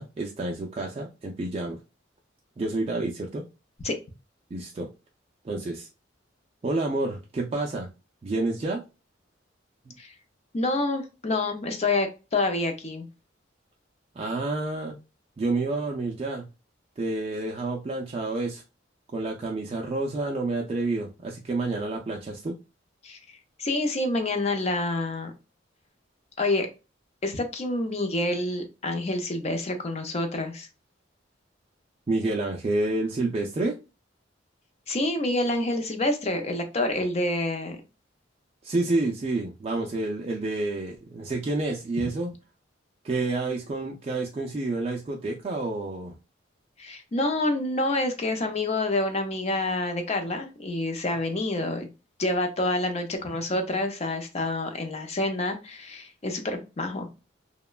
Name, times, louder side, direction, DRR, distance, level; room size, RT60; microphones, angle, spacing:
voice 1, 0.0-1.8 2.6-3.4 4.5-4.9 5.4-5.9 6.6-7.9 8.2-8.8 9.9-10.0 14.2-15.0 15.4-16.5 17.0-18.6 19.1-22.6 32.1-33.8 38.6-42.3 43.0-46.1, right 2 dB, 30° right, -1 dB, 0.3 m, -29 dB
voice 2, 10.5-13.1 23.0-23.2 23.6-25.3 26.4-26.7 27.2-30.7 34.9-37.8 46.8-51.9 52.2-57.1, left 2 dB, 35° left, 6 dB, 0.5 m, -27 dB
2.9 x 2.1 x 2.3 m, 0.29 s
head